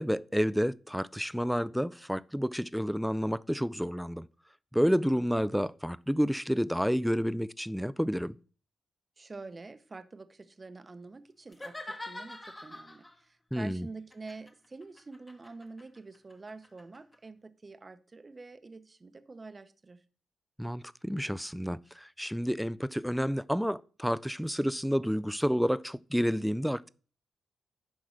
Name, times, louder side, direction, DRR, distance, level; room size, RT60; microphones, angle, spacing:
voice 1, 0.0-4.3 4.7-8.4 13.5-13.9 20.6-26.9, equal, ahead, 0.4 m, -30 dB
voice 2, 9.2-20.0, right 3 dB, 30° right, 0.8 m, -47 dB
sound 1, 11.5-13.2 14.1-17.2, left 1 dB, 15° left, 1.0 m, -45 dB
10.5 x 3.7 x 6.4 m
cardioid pair, 90°, 0 cm